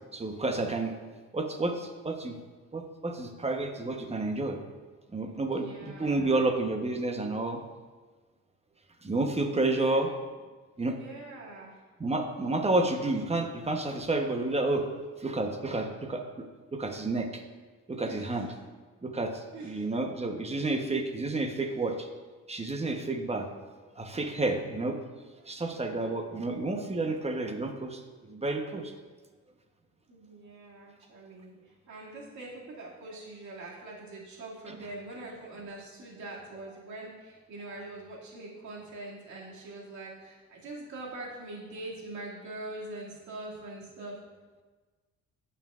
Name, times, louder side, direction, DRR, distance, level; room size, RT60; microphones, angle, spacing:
voice 1, 0.1-0.9 1.3-2.3 2.7-4.6 5.1-7.6 9.0-10.1 10.8-11.0 12.0-14.8 15.2-16.2 16.7-17.3 17.9-18.5 19.0-19.3 19.6-22.0 22.5-23.5 24.0-25.0 25.5-28.0 28.3-28.9, right 2 dB, 20° right, 4 dB, 1.0 m, -30 dB
voice 2, 5.5-6.6 9.7-10.0 10.8-11.8 18.0-18.6 19.5-19.8 25.4-25.5 30.1-44.2, right 2 dB, 70° right, -4 dB, 2.4 m, -43 dB
13.5 x 5.7 x 2.5 m, 1.3 s
cardioid pair, 90°, 30 cm